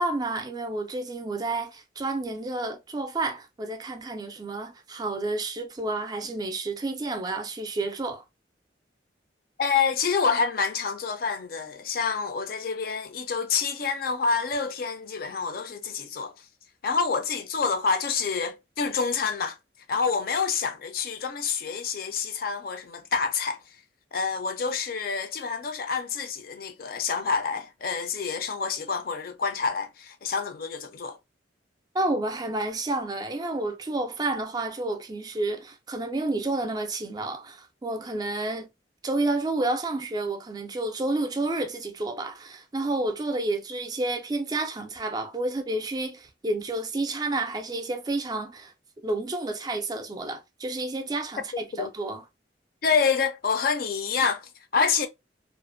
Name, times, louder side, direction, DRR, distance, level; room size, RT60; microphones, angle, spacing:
voice 1, 0.0-8.2 31.9-38.7 39.0-48.7 49.0-52.2, right 2 dB, 20° right, 0.3 m, -30 dB
voice 2, 9.6-16.3 16.8-19.6 19.9-23.6 24.1-31.2 51.7-51.9 52.8-55.1, left 5 dB, 55° left, 0.4 m, -27 dB
2.4 x 2.1 x 2.4 m
head